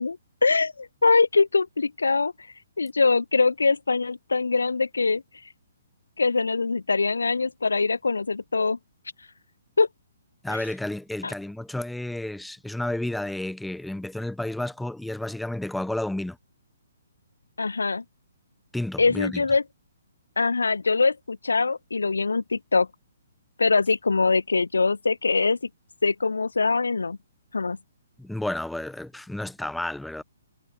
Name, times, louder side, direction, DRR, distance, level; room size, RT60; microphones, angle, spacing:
voice 1, 0.0-2.3 2.8-5.2 6.2-8.8 9.8-9.9 10.5-10.6 11.2-11.3 17.6-18.0 19.0-19.6 20.4-22.9 23.6-25.6 26.0-27.2 27.5-27.8, left 4 dB, 80° left, 2.4 m, -23 dB
voice 2, 10.4-16.4 18.7-19.4 28.2-30.2, left 1 dB, ahead, 6.3 m, -31 dB
figure-of-eight pair, 130°, 0 cm